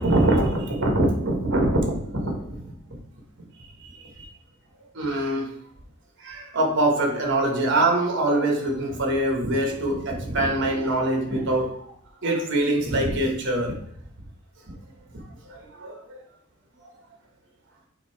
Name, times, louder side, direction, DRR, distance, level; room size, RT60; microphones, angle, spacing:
voice 1, 0.0-2.7 3.8-4.3 4.9-5.5 6.2-11.8 12.2-13.8 15.5-16.2, right 1 dB, 55° right, 2 dB, 1.5 m, -24 dB
7.9 x 2.9 x 4.6 m, 0.66 s
head